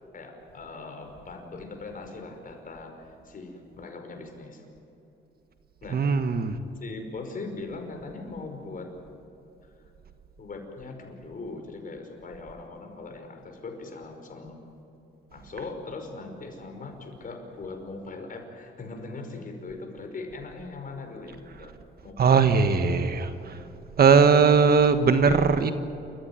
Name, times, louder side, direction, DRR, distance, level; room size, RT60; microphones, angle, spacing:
voice 1, 0.1-4.7 5.8-6.1 6.8-9.0 10.4-14.7 15.3-21.8 22.0-23.1 23.4-23.5, left 3 dB, 45° left, 4 dB, 5.3 m, -40 dB
voice 2, 5.9-6.6 22.2-23.6 24.0-25.7, right 5 dB, 50° right, 9 dB, 1.5 m, -19 dB
29.0 x 14.5 x 9.6 m, 2.9 s
cardioid pair, 90°, 20 cm